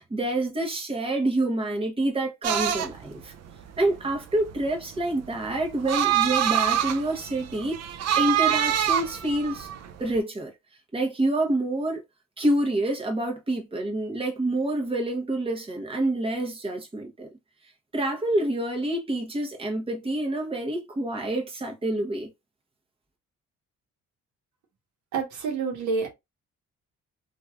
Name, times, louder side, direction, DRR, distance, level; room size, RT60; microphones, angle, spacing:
voice 1, 0.0-3.3 3.8-9.7 10.0-10.5 10.9-12.0 12.4-17.3 17.9-22.3, right 1 dB, 20° right, 1.0 m, -27 dB
sound 1, 2.4-10.2, right 10 dB, 60° right, 0.5 m, -26 dB
voice 2, 25.1-26.1, right 5 dB, 75° right, 1.1 m, -28 dB
3.1 x 2.6 x 2.3 m
cardioid pair, 90°, 30 cm